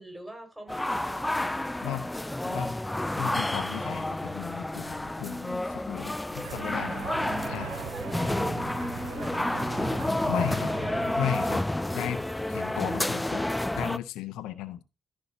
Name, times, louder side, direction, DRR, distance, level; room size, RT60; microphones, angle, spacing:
voice 1, 0.0-1.8 6.3-6.6 7.9-11.0, right 1 dB, 10° right, 5.5 m, -43 dB
sound 1, 0.7-14.0, left 1 dB, 15° left, 0.4 m, -30 dB
voice 2, 2.4-2.8 3.1-7.0 7.5-7.7 10.3-10.7 11.2-11.7 11.9-12.2 12.5-13.5 13.7-14.8, left 11 dB, 80° left, 0.6 m, -35 dB
sound 2, 6.4-11.5, right 14 dB, 85° right, 0.4 m, -41 dB
14.5 x 5.4 x 2.9 m
hypercardioid pair, 45°, 0 cm